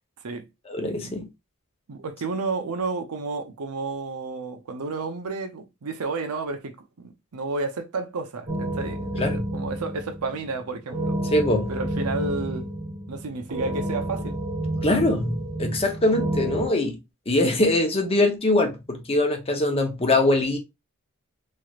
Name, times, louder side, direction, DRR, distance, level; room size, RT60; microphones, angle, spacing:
voice 1, 0.7-1.3 9.2-9.4 11.3-11.7 14.8-17.0 17.3-20.6, left 2 dB, 25° left, 0.7 m, -22 dB
voice 2, 1.9-11.2 11.7-12.7 13.1-14.4, right 3 dB, 85° right, 0.6 m, -31 dB
sound 1, 8.5-16.7, right 1 dB, 35° right, 1.0 m, -30 dB
3.3 x 3.0 x 2.4 m
head